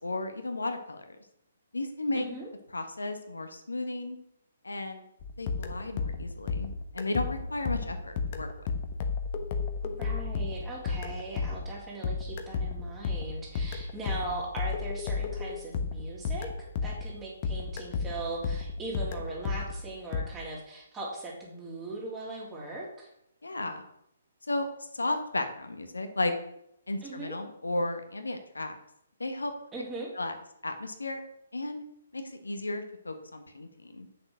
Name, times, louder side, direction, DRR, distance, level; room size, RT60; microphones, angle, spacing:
voice 1, 0.0-1.0 1.7-2.3 2.7-4.2 4.6-5.0 5.4-8.5 23.4-23.8 24.5-26.3 26.9-28.7 29.2-29.5 30.1-30.3 30.6-31.2 31.5-31.8 32.1-34.1, left 2 dB, 85° left, 6 dB, 1.4 m, -34 dB
voice 2, 2.2-2.5 9.8-23.1 27.0-27.4 29.7-30.1, right 2 dB, 15° right, -4 dB, 3.5 m, -39 dB
sound 1, 5.2-17.2 17.4-20.2, left 4 dB, 40° left, 1.2 m, -33 dB
7.9 x 6.8 x 6.3 m, 0.78 s
figure-of-eight pair, 135°, 0 cm